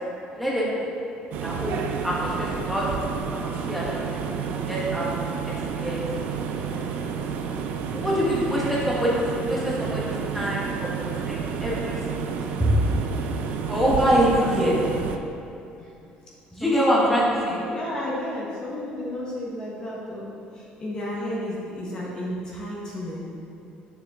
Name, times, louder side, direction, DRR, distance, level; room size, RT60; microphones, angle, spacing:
voice 1, 0.4-0.9 1.4-1.8 2.0-2.8 3.4-3.8 4.6-5.1 5.4-6.0 6.7-6.8 7.9-10.0 10.3-10.6 11.3-11.9 12.6-12.7 13.7-14.8 16.5-17.6, equal, ahead, -7 dB, 1.4 m, -24 dB
sound 1, 1.3-15.2, right 6 dB, 65° right, 0.5 m, -30 dB
voice 2, 16.6-17.3 17.6-20.3 20.5-23.2, left 1 dB, 30° left, -5 dB, 1.3 m, -32 dB
9.1 x 6.8 x 3.6 m, 2.6 s
cardioid pair, 175°, 3 cm